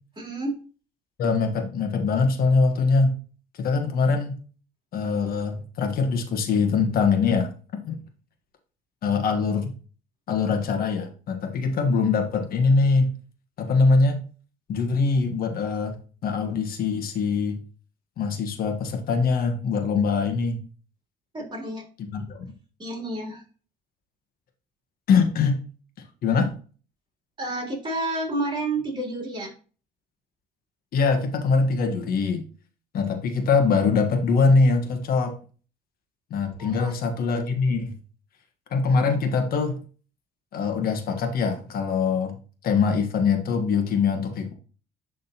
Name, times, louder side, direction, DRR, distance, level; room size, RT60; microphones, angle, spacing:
voice 1, 0.2-0.5 21.3-21.8 22.8-23.4 27.4-29.5 36.6-36.9, right 2 dB, 30° right, -2 dB, 3.3 m, -30 dB
voice 2, 1.2-3.1 3.5-4.4 4.9-7.5 7.8-8.0 9.0-9.7 10.3-13.1 13.6-14.2 14.7-17.6 18.2-20.6 22.1-22.4 25.1-25.6 26.2-26.5 30.9-32.4 32.9-35.3 36.3-38.0 38.7-39.8 40.5-42.3 42.6-44.5, left 4 dB, 60° left, 5 dB, 1.4 m, -23 dB
10.5 x 3.7 x 2.9 m, 0.39 s
cardioid pair, 110°, 17 cm